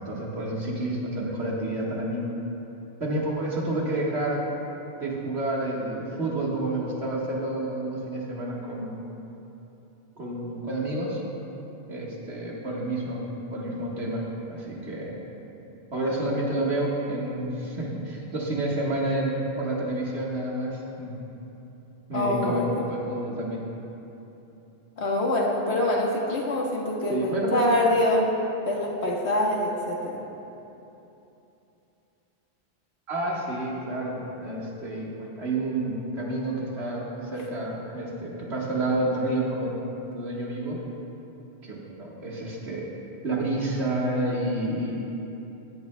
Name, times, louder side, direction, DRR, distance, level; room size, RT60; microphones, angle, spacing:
voice 1, 0.0-2.2 3.0-4.4 5.0-9.0 10.2-11.2 11.9-13.3 13.5-15.1 15.9-21.1 22.1-23.6 27.1-27.7 33.1-35.1 35.4-39.8 40.1-40.8 41.6-42.9 43.2-45.0, right 1 dB, 75° right, -3 dB, 1.8 m, -29 dB
voice 2, 22.1-22.6 25.0-28.3 28.7-30.2, left 1 dB, 80° left, -2 dB, 1.6 m, -25 dB
16.0 x 10.5 x 2.2 m, 3.0 s
omnidirectional pair, 1.1 m